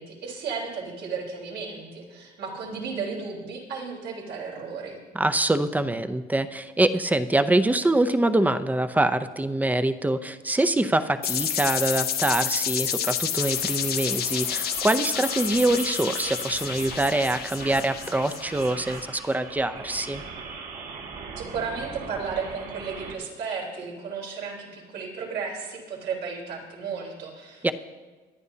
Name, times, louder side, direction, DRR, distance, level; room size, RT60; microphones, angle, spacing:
voice 1, 0.0-5.0 21.4-27.7, right 5 dB, 75° right, -2 dB, 3.8 m, -34 dB
voice 2, 5.1-20.2 27.6-27.7, right 2 dB, 10° right, 11 dB, 0.6 m, -24 dB
sound 1, 11.2-19.0, left 9 dB, 65° left, 1.0 m, -29 dB
sound 2, 13.4-23.1, right 5 dB, 55° right, 2.1 m, -40 dB
22.0 x 11.0 x 2.8 m, 1.3 s
cardioid pair, 110°, 17 cm